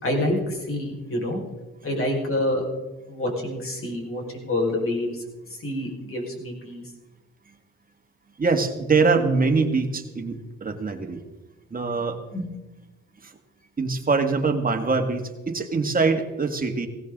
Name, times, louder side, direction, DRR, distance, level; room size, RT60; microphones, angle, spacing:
voice 1, 0.0-1.4 1.8-2.6 3.1-5.2 5.6-6.8 12.3-12.4, left 1 dB, 45° left, 0 dB, 5.5 m, -27 dB
voice 2, 8.4-11.2 11.7-12.2 13.2-13.3 13.8-16.9, right 4 dB, 30° right, 4 dB, 2.2 m, -23 dB
17.5 x 16.5 x 4.0 m, 1.1 s
cardioid pair, 85°, 29 cm